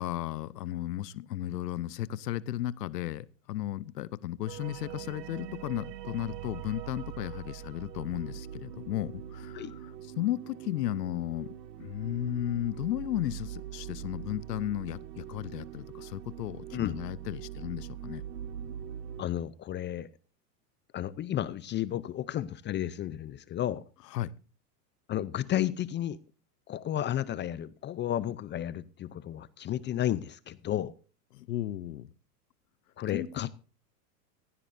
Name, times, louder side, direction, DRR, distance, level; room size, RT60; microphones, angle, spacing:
voice 1, 0.0-11.5 11.8-18.2 24.1-24.3 31.3-32.1 33.1-33.3, left 13 dB, 80° left, 0.9 m, -34 dB
sound 1, 4.5-19.2, right 11 dB, 85° right, 1.0 m, -43 dB
voice 2, 19.2-20.1 20.9-23.8 25.1-26.2 26.7-30.9 33.0-33.5, left 12 dB, 25° left, 0.6 m, -32 dB
16.0 x 15.5 x 2.6 m
hypercardioid pair, 110°, 48 cm